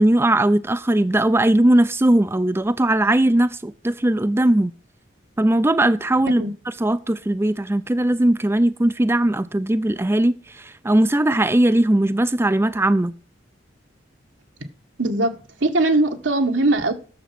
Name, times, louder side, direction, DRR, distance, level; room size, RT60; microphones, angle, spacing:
voice 1, 0.0-4.7 5.4-6.4 6.8-13.1, right 1 dB, 15° right, 0.4 m, -19 dB
voice 2, 15.0-16.9, right 2 dB, 85° right, 1.9 m, -20 dB
9.3 x 7.1 x 5.9 m
head